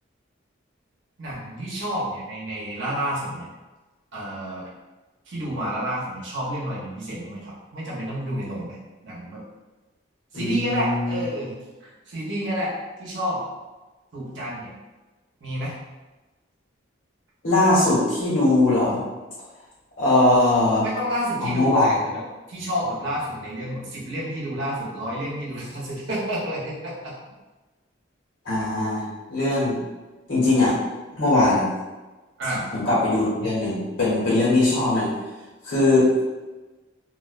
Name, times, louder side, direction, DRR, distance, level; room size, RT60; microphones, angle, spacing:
voice 1, 1.2-3.5 4.1-4.7 5.3-8.8 9.0-9.4 10.3-11.5 11.8-13.4 14.1-14.7 15.4-15.7 20.8-22.2 22.5-27.2 32.4-32.7, equal, 65° right, -6 dB, 0.8 m, -30 dB
voice 2, 10.3-11.2 17.4-19.0 20.0-20.8 21.4-22.0 28.4-29.8 30.3-30.7 31.2-31.6 32.7-35.1 35.6-36.2, left 2 dB, 70° left, -8 dB, 1.1 m, -20 dB
2.4 x 2.2 x 2.4 m, 1.2 s
head